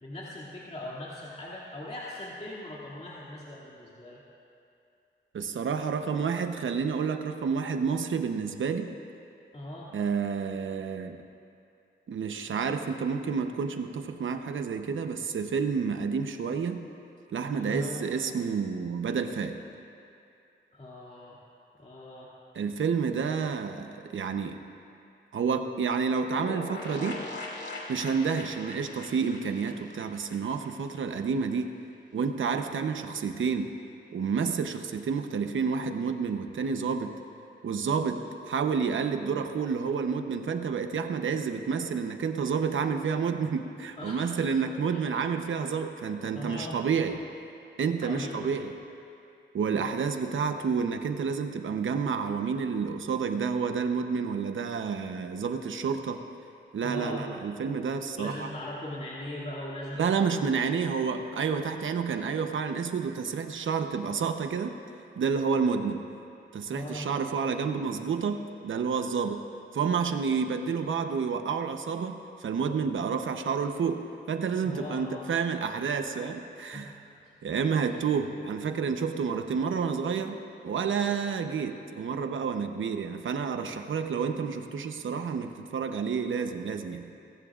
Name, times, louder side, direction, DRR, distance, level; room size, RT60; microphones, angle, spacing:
voice 1, 0.0-4.2 9.5-9.9 17.5-18.1 20.7-21.4 21.8-22.3 44.0-44.4 44.9-45.0 45.5-45.6 46.3-46.8 48.0-48.5 49.7-49.9 56.8-57.3 58.2-60.8 66.7-67.1 74.6-75.3 76.7-76.8 77.8-78.0, left 1 dB, 35° left, -7 dB, 2.5 m, -39 dB
voice 2, 5.3-8.9 9.9-11.2 12.1-16.8 17.3-19.6 22.5-24.6 25.3-27.2 27.9-31.8 32.1-33.7 34.1-37.1 37.6-47.2 47.8-48.7 49.5-56.2 56.7-58.5 60.0-64.8 65.2-66.1 66.5-69.4 69.7-77.0 77.4-80.4 80.6-87.0, right 6 dB, 80° right, 7 dB, 0.9 m, -29 dB
sound 1, 26.4-31.0 31.3-31.4 31.6-31.7, left 2 dB, 65° left, 2.6 m, -40 dB
27.5 x 15.0 x 2.5 m, 2.6 s
cardioid pair, 75°, 20 cm